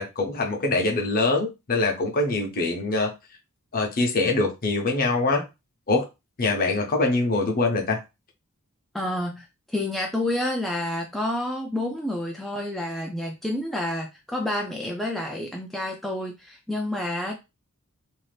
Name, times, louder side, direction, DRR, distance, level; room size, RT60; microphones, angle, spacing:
voice 1, 0.0-3.1 3.7-5.4 5.9-6.1 6.4-8.0, left 2 dB, 40° left, 0.8 m, -24 dB
voice 2, 8.9-17.3, left 1 dB, ahead, 0.3 m, -29 dB
2.7 x 2.4 x 3.2 m
head